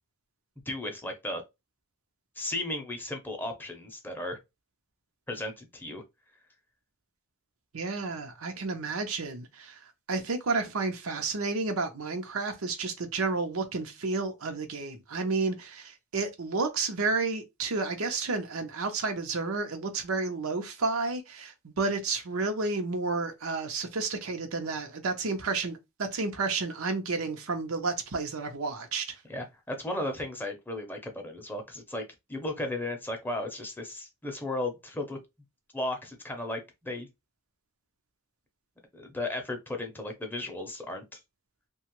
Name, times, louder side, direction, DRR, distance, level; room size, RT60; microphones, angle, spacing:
voice 1, 0.7-1.4 2.4-4.4 5.3-6.0 29.3-32.0 32.3-35.2 35.7-37.1 38.9-41.2, left 1 dB, 10° left, 0.6 m, -35 dB
voice 2, 7.7-9.8 10.1-29.2, right 3 dB, 85° right, 0.7 m, -31 dB
2.9 x 2.3 x 3.0 m
head